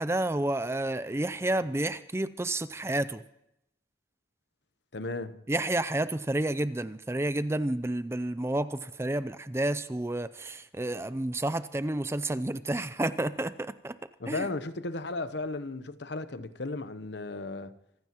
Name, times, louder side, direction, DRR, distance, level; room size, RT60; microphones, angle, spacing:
voice 1, 0.0-3.2 5.5-14.0 14.3-14.5, right 1 dB, 15° right, 0.5 m, -30 dB
voice 2, 4.9-5.4 14.2-17.7, left 2 dB, 65° left, 0.9 m, -35 dB
25.5 x 15.0 x 3.0 m
head